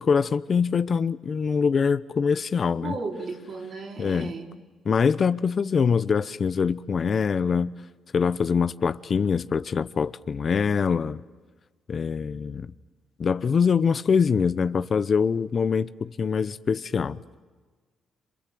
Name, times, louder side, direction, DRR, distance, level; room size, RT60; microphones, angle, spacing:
voice 1, 0.0-2.9 4.0-4.3 4.9-7.7 8.1-11.2 11.9-12.7 13.2-17.2, left 6 dB, 45° left, 0.8 m, -24 dB
voice 2, 2.8-4.5, right 4 dB, 50° right, 4.8 m, -34 dB
28.0 x 27.0 x 7.8 m
cardioid pair, 90°, 0 cm